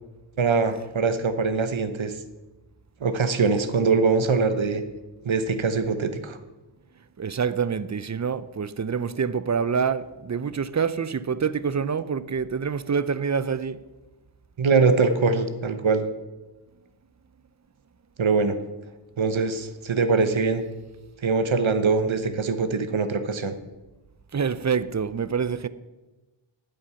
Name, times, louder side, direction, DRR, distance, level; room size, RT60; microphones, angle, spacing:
voice 1, 0.4-2.1 3.0-4.8 5.2-6.4 14.6-16.1 18.2-18.5 19.2-20.6 21.2-23.5, right 4 dB, 70° right, 1.1 m, -23 dB
voice 2, 7.2-13.8 24.3-25.7, right 6 dB, 35° right, 0.5 m, -26 dB
12.5 x 7.7 x 5.8 m
wide cardioid pair, 60°, 48 cm